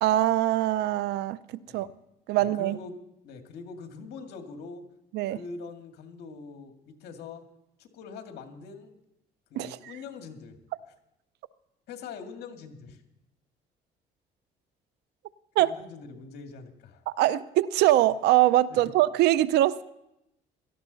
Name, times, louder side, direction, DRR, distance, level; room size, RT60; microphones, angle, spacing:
voice 1, 0.0-1.9 2.3-2.8 5.1-5.4 9.6-9.9 15.6-15.7 17.1-19.8, right 14 dB, 80° right, 17 dB, 0.6 m, -23 dB
voice 2, 2.3-3.0 3.2-4.8 5.3-7.4 7.8-8.9 9.5-10.6 11.9-13.0 15.6-17.0 18.7-18.8, left 4 dB, 75° left, 5 dB, 2.0 m, -43 dB
17.5 x 13.5 x 4.0 m, 0.85 s
cardioid pair, 110°, 17 cm